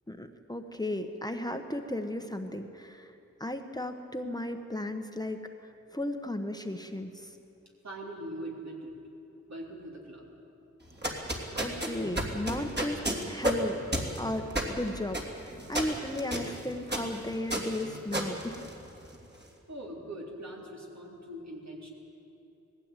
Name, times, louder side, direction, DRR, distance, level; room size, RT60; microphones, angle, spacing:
voice 1, 0.1-3.1 3.4-7.4 11.0-13.8 14.2-18.7, left 1 dB, 15° left, 5 dB, 1.2 m, -35 dB
voice 2, 7.8-8.9 9.5-10.3 19.3-21.9, right 1 dB, 65° right, -2 dB, 3.9 m, -42 dB
sound 1, 10.8-19.2, right 1 dB, 35° right, 3.1 m, -33 dB
19.0 x 15.0 x 9.2 m, 2.8 s
wide cardioid pair, 55°, 29 cm